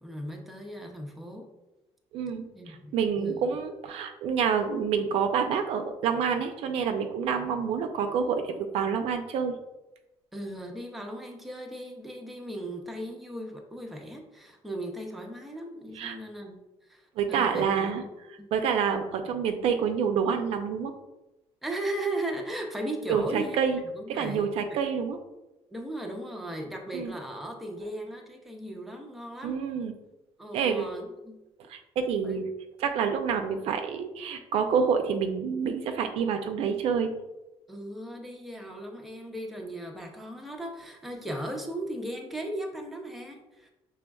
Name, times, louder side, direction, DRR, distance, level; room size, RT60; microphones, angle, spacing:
voice 1, 0.0-1.5 2.5-3.4 10.3-18.1 18.4-18.6 21.6-23.6 23.9-24.8 25.7-29.6 30.4-31.4 32.2-32.4 37.7-43.7, right 1 dB, ahead, 1 dB, 0.5 m, -37 dB
voice 2, 2.1-2.4 2.9-9.6 16.0-16.2 17.2-18.0 18.5-20.9 23.1-23.8 24.1-25.2 26.9-27.1 29.4-29.9 30.5-30.8 31.7-32.5 32.8-37.1, right 6 dB, 65° right, 6 dB, 0.5 m, -27 dB
6.2 x 3.3 x 2.3 m, 1.0 s
cardioid pair, 155°, 11 cm